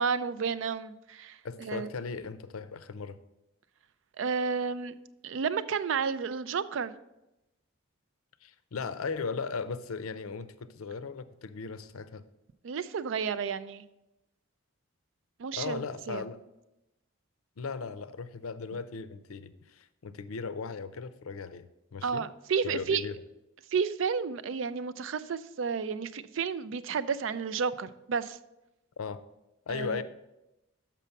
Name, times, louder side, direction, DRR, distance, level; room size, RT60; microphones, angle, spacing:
voice 1, 0.0-1.9 4.2-4.9 5.2-6.9 12.6-13.8 15.4-15.8 16.1-16.2 22.0-23.1 23.7-28.4 29.7-30.0, right 6 dB, 60° right, 14 dB, 0.4 m, -31 dB
voice 2, 1.4-3.2 8.4-12.2 15.5-16.4 17.6-21.7 21.9-22.2 22.6-23.2 29.0-29.2 29.7-30.0, left 5 dB, 80° left, 13 dB, 0.5 m, -37 dB
6.9 x 5.9 x 5.8 m, 0.93 s
head